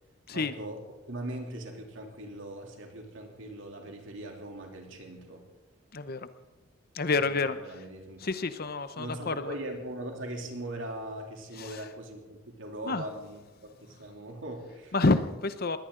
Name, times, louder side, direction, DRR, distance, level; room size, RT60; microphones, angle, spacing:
voice 1, 0.3-0.8 1.1-5.4 7.2-8.2 9.0-14.9, right 1 dB, 60° right, 2 dB, 3.0 m, -40 dB
voice 2, 6.9-7.6 8.2-9.5 11.6-11.8 12.9-13.0 14.9-15.8, left 3 dB, 45° left, 11 dB, 0.8 m, -28 dB
21.0 x 17.0 x 3.8 m, 1.1 s
head